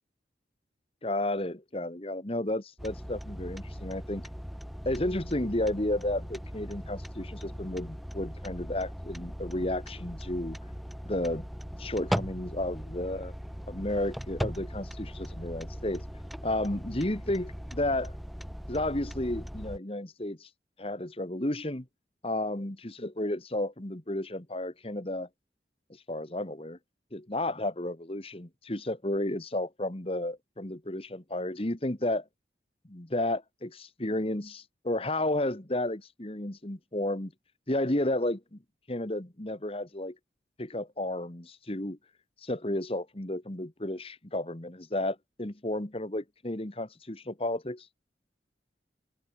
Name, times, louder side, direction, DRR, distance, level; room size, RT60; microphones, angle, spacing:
voice 1, 1.0-4.2 4.8-10.6 11.0-11.5 11.8-13.3 13.7-16.0 16.4-18.1 18.7-20.5 20.8-21.8 22.2-25.3 26.1-26.8 27.1-32.2 32.9-37.3 37.7-38.6 38.9-40.1 40.6-42.0 42.4-47.9, left 1 dB, 35° left, 1.7 m, -32 dB
sound 1, 2.8-19.8, equal, ahead, 1.4 m, -39 dB
head